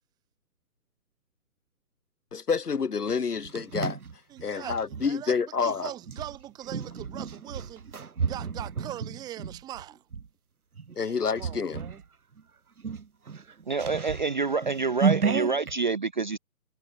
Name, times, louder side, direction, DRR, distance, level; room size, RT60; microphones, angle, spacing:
voice 1, 2.3-4.0 4.4-5.9 11.0-11.8, left 5 dB, 90° left, 3.3 m, -28 dB
sound 1, 3.1-5.1 6.0-10.3 10.8-11.0 11.4-12.0 12.4-12.5 12.8-15.7, right 5 dB, 75° right, 3.6 m, -32 dB
voice 2, 4.3-10.0 11.0-12.0, right 13 dB, 10° right, 5.3 m, -41 dB
voice 3, 13.7-16.4, right 4 dB, 30° right, 0.8 m, -27 dB
hypercardioid pair, 175°, 45 cm